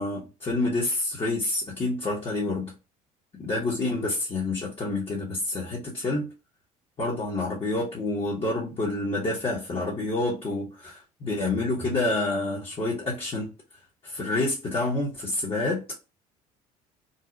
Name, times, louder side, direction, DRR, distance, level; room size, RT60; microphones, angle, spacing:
voice 1, 0.0-2.7 3.3-6.3 7.0-13.5 14.0-16.0, left 2 dB, 30° left, 1.1 m, -28 dB
2.8 x 2.1 x 3.8 m
hypercardioid pair, 60°, 19 cm